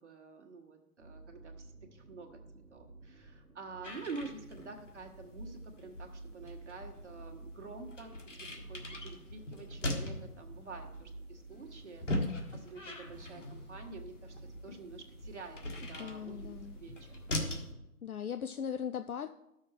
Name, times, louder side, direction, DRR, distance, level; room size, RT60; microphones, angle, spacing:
voice 1, 0.0-2.4 2.7-17.2, right 4 dB, 50° right, 2 dB, 1.6 m, -48 dB
sound 1, 1.0-17.8, right 2 dB, 70° right, 1.4 m, -52 dB
sound 2, 3.8-17.7, left 1 dB, 55° left, 1.7 m, -41 dB
sound 3, 11.5-17.5, left 1 dB, 30° left, 1.2 m, -60 dB
voice 2, 16.0-16.8 18.0-19.3, left 8 dB, 70° left, 10 dB, 0.6 m, -38 dB
12.5 x 6.5 x 4.5 m, 0.89 s
figure-of-eight pair, 155°, 45 cm